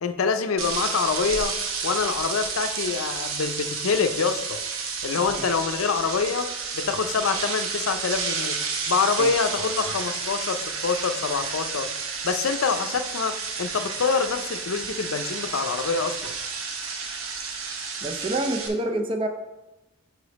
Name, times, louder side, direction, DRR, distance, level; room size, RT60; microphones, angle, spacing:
voice 1, 0.0-1.6 1.8-4.6 5.0-6.5 6.7-8.6 8.9-11.9 12.2-16.3, left 5 dB, 90° left, 9 dB, 0.5 m, -26 dB
sound 1, 0.6-18.7, right 5 dB, 90° right, 0.8 m, -31 dB
voice 2, 18.0-19.3, right 1 dB, 25° right, 4 dB, 0.5 m, -27 dB
5.2 x 4.9 x 4.0 m, 0.96 s
head